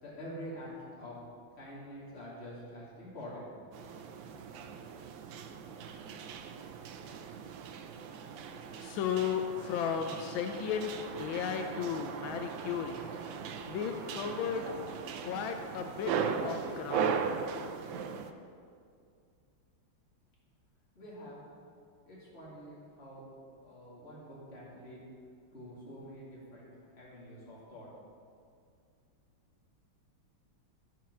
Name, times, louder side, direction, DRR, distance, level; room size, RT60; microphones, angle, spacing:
voice 1, 0.0-1.2 1.5-3.5 20.9-21.4 22.1-23.2 23.6-25.0 25.5-26.7 26.9-27.9, equal, 30° left, -7 dB, 2.6 m, -46 dB
sound 1, 3.7-18.3, right 6 dB, 75° right, 1.3 m, -38 dB
voice 2, 8.0-10.9 11.2-13.0 13.6-14.7 15.2-16.2 16.4-17.2, left 8 dB, 75° left, 5 dB, 1.3 m, -35 dB
12.5 x 4.7 x 6.1 m, 2.3 s
omnidirectional pair, 2.3 m